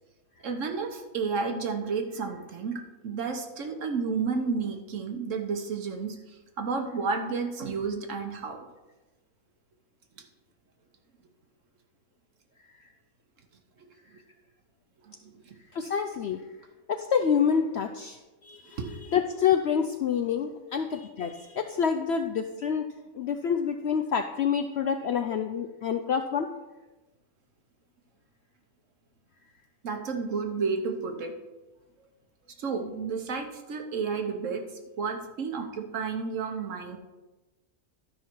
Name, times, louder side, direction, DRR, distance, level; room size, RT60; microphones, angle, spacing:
voice 1, 0.4-2.7 3.0-8.6 10.2-10.3 15.0-15.5 18.8-18.9 29.8-31.3 32.6-34.6 35.0-37.0, right 5 dB, 60° right, 5 dB, 1.3 m, -31 dB
voice 2, 15.7-16.5 16.9-22.9 23.1-26.5, left 7 dB, 70° left, 6 dB, 0.6 m, -27 dB
12.5 x 5.5 x 4.5 m, 1.1 s
omnidirectional pair, 1.6 m